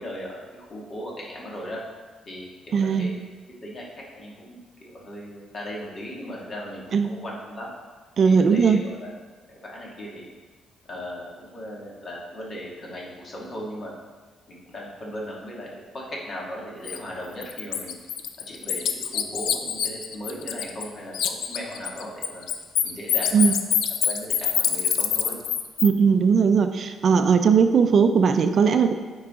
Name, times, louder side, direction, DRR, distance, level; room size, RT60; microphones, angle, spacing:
voice 1, 0.0-1.8 2.3-3.1 3.6-3.8 4.1-7.7 8.2-9.1 9.5-10.3 10.9-13.9 14.5-15.7 15.9-17.9 18.5-22.5 22.8-23.5 24.1-25.4, equal, 45° left, -3 dB, 2.0 m, -37 dB
voice 2, 2.7-3.1 6.9-7.1 8.2-8.8 23.3-23.5 25.8-28.9, right 6 dB, 55° right, 8 dB, 0.5 m, -18 dB
Bird, 16.9-17.0 17.4-20.9 21.1-25.9, left 9 dB, 80° left, 0.5 m, -25 dB
9.0 x 4.8 x 3.7 m, 1.4 s
cardioid pair, 90°, 0 cm